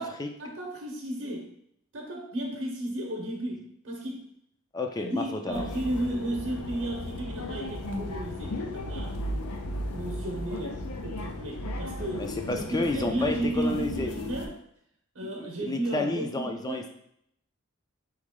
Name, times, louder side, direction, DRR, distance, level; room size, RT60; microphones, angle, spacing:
voice 1, 0.4-1.5 1.9-4.3 5.0-9.2 9.8-12.3 12.5-14.5 15.1-16.8, right 1 dB, 60° right, -1 dB, 0.8 m, -33 dB
voice 2, 4.7-5.6 12.2-14.5 15.4-16.9, left 2 dB, 20° left, 4 dB, 0.3 m, -31 dB
sound 1, 5.5-14.5, left 1 dB, 85° left, 0.5 m, -35 dB
4.2 x 3.1 x 3.6 m, 0.73 s
head